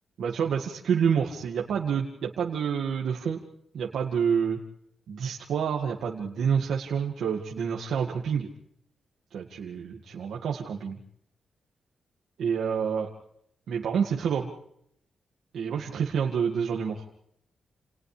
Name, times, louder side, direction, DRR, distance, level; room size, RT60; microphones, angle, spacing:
voice 1, 0.2-3.4 3.7-4.6 5.1-8.5 9.3-11.0 12.4-13.1 13.7-14.5 15.5-17.0, right 7 dB, 90° right, 0 dB, 2.1 m, -28 dB
29.5 x 29.0 x 3.4 m, 0.73 s
wide cardioid pair, 175°, 0 cm